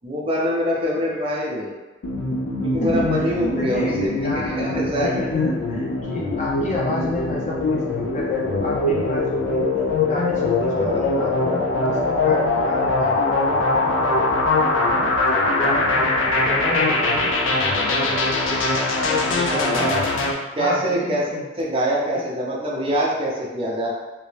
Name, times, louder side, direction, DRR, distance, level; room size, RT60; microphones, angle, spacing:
voice 1, 0.0-1.7 2.6-5.1 10.7-11.0 19.1-20.0 20.6-21.2 21.6-23.9, equal, 30° right, -3 dB, 0.5 m, -24 dB
sound 1, 2.0-20.3, left 2 dB, 90° left, 0.5 m, -22 dB
voice 2, 2.8-9.6 10.0-15.1 15.6-20.0 20.6-21.5 22.0-22.1, left 2 dB, 40° left, -4 dB, 0.6 m, -30 dB
2.9 x 2.6 x 3.2 m, 1.2 s
head